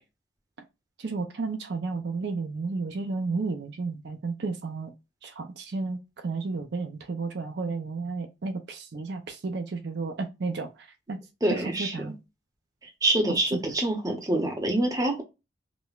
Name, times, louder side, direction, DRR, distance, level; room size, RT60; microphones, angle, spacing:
voice 1, 1.0-4.9 5.2-11.2 11.5-12.2, right 4 dB, 60° right, 0.5 m, -32 dB
voice 2, 11.4-12.1 13.0-15.2, right 1 dB, 20° right, 0.7 m, -26 dB
5.0 x 2.1 x 2.3 m
head